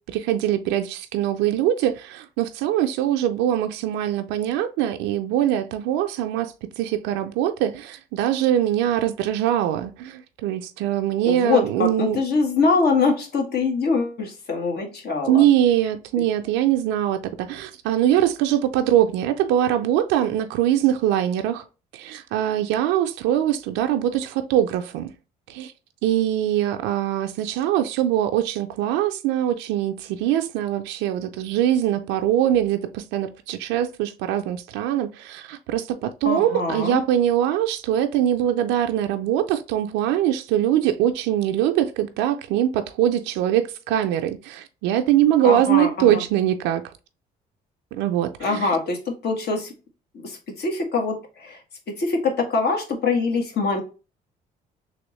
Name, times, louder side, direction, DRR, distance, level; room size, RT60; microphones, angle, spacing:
voice 1, 0.1-12.2 15.3-21.6 21.9-25.1 25.5-25.7 26.0-46.9 47.9-48.7, right 11 dB, 85° right, 0.4 m, -22 dB
voice 2, 11.2-15.4 36.2-37.0 45.4-46.2 48.4-49.7 50.2-51.6 52.0-53.8, left 4 dB, 60° left, 1.4 m, -23 dB
3.5 x 3.0 x 3.0 m
supercardioid pair, 70°, 19 cm